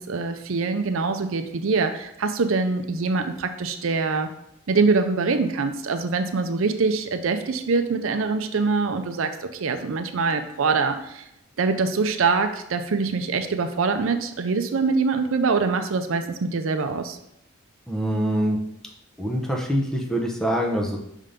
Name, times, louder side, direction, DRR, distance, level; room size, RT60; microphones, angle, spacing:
voice 1, 0.0-4.3 4.7-11.2 11.6-17.2, right 4 dB, 70° right, 7 dB, 0.5 m, -24 dB
voice 2, 17.9-18.6 19.2-21.0, equal, 5° left, 0 dB, 0.8 m, -24 dB
5.5 x 3.7 x 5.1 m, 0.77 s
head